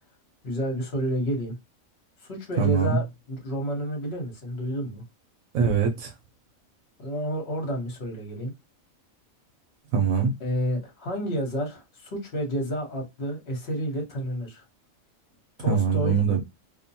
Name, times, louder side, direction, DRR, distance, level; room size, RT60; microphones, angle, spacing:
voice 1, 0.4-1.6 2.2-5.0 7.0-8.5 10.4-14.6 15.6-16.2, equal, 55° left, 1.2 m, -30 dB
voice 2, 2.6-3.0 5.5-6.1 9.9-10.3 15.7-16.4, right 6 dB, 85° right, 1.0 m, -22 dB
2.5 x 2.1 x 2.7 m
omnidirectional pair, 1.4 m